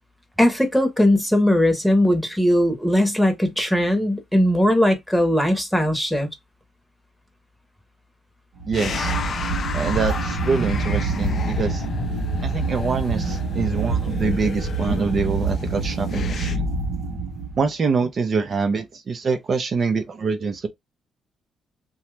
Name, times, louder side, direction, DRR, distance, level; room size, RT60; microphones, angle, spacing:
voice 1, 0.4-6.3, left 1 dB, ahead, 1.0 m, -19 dB
sound 1, 8.6-17.7, right 3 dB, 70° right, 0.9 m, -26 dB
sound 2, 8.7-16.6, left 6 dB, 55° left, 0.4 m, -32 dB
voice 2, 8.7-9.1 9.7-11.8 12.4-16.7 17.6-20.7, right 4 dB, 45° right, 0.6 m, -25 dB
2.8 x 2.3 x 3.2 m
cardioid pair, 90°, 0 cm